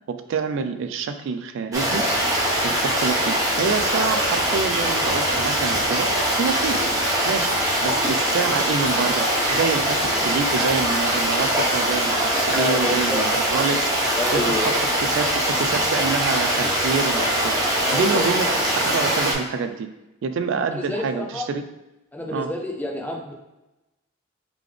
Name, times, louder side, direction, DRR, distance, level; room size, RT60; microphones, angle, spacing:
voice 1, 0.1-2.1 2.6-6.1 6.4-6.9 7.3-7.6 7.8-13.9 14.3-14.7 15.0-17.6 17.9-18.5 18.9-19.9 20.2-21.6 22.3-22.5, right 5 dB, 60° right, 9 dB, 0.3 m, -27 dB
Stream, 1.7-19.3, right 1 dB, 15° right, 0.9 m, -22 dB
voice 2, 12.3-13.2 14.2-14.7 17.7-18.3 20.7-21.5 22.1-23.3, left 1 dB, 10° left, 1 dB, 0.5 m, -28 dB
3.7 x 3.4 x 3.3 m, 0.99 s
head